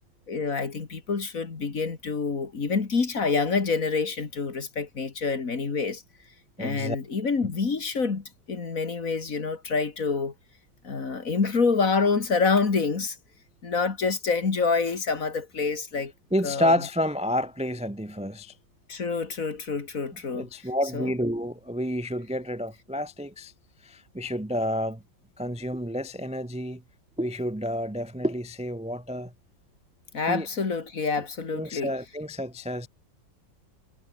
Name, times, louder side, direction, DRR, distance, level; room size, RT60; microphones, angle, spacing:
voice 1, 0.3-6.0 6.6-10.3 10.8-13.2 13.6-16.1 16.4-16.7 18.9-20.5 20.9-21.1 30.1-31.9, left 4 dB, 45° left, 2.6 m, -27 dB
voice 2, 6.6-7.0 16.3-18.5 20.3-23.5 23.8-25.0 25.4-26.8 27.2-29.3 30.3-30.5 31.5-32.9, equal, 10° right, 0.4 m, -29 dB
omnidirectional pair, 2.0 m